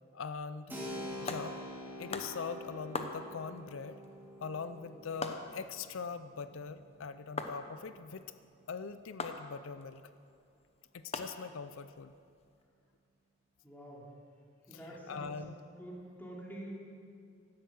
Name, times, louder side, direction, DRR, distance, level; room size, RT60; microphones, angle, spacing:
voice 1, 0.1-0.8 1.2-1.5 2.0-4.0 4.4-8.3 8.7-10.0 10.9-12.1 14.7-14.8 15.1-15.5, left 5 dB, 85° left, 12 dB, 0.5 m, -42 dB
voice 2, 0.7-1.2 4.9-5.0 13.6-14.1 14.7-15.5 15.8-16.8, right 1 dB, 10° left, -4 dB, 2.9 m, -47 dB
Keyboard (musical), 0.7-9.1, left 1 dB, 10° right, 2.8 m, -47 dB
sound 1, 1.1-12.6, left 3 dB, 30° left, 0.9 m, -45 dB
16.0 x 12.5 x 6.2 m, 2.3 s
head